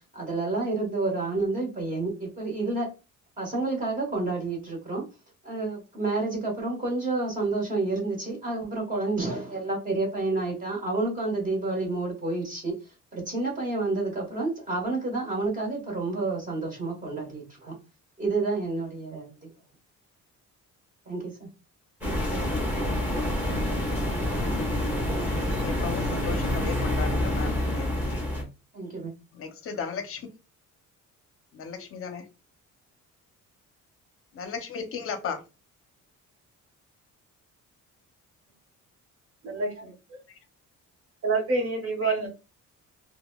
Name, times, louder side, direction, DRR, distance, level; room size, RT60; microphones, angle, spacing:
voice 1, 0.1-2.9 3.4-5.0 5.4-12.7 13.1-17.7 18.2-19.5 21.1-21.5 28.7-29.1, right 3 dB, 25° right, 1.3 m, -29 dB
sound 1, 22.0-28.4, left 1 dB, 5° right, 1.3 m, -27 dB
voice 2, 25.2-28.3 29.3-30.3 31.5-32.3 34.3-35.4 42.0-42.3, left 6 dB, 45° left, 0.7 m, -36 dB
voice 3, 39.4-40.2 41.2-42.3, right 3 dB, 45° right, 1.1 m, -28 dB
3.9 x 2.2 x 2.3 m
cardioid pair, 155°, 32 cm